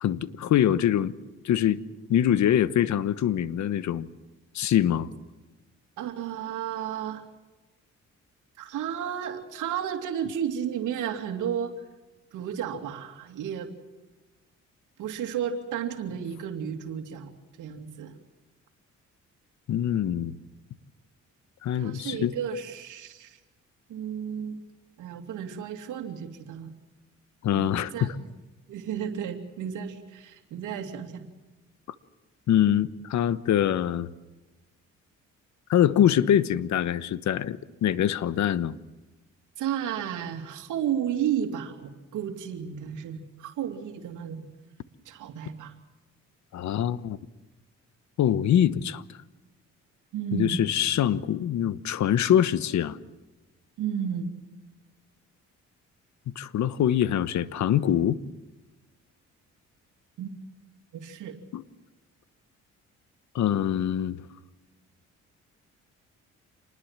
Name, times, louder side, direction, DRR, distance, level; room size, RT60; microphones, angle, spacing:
voice 1, 0.0-1.1 1.4-1.8 2.1-4.1 4.5-5.1 19.7-20.3 21.6-22.3 27.4-28.1 32.5-34.1 35.7-38.8 46.5-47.2 48.2-49.0 50.3-53.0 56.3-58.2 61.5-61.6 63.3-64.2, left 10 dB, 70° left, 1.2 m, -24 dB
voice 2, 6.0-7.2 8.6-11.7 12.3-13.7 15.0-17.3 17.6-18.2 21.7-23.4 23.9-24.6 25.0-26.7 27.5-28.3 28.7-31.3 39.6-44.5 45.0-45.7 50.1-50.6 53.8-54.3 60.2-60.3 60.9-61.4, right 8 dB, 85° right, 2.7 m, -33 dB
27.5 x 20.5 x 7.5 m
cardioid pair, 90°, 30 cm